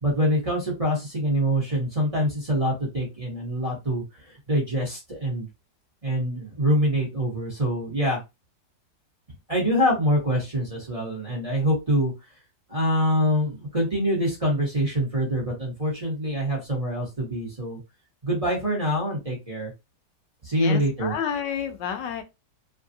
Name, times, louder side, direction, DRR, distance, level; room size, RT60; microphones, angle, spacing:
voice 1, 0.0-5.5 6.0-8.2 9.5-12.1 12.7-17.8 18.2-19.7 20.4-21.1, equal, 25° right, 1.0 m, -25 dB
voice 2, 20.6-22.2, left 8 dB, 85° left, 1.3 m, -30 dB
3.4 x 2.3 x 2.6 m
omnidirectional pair, 1.9 m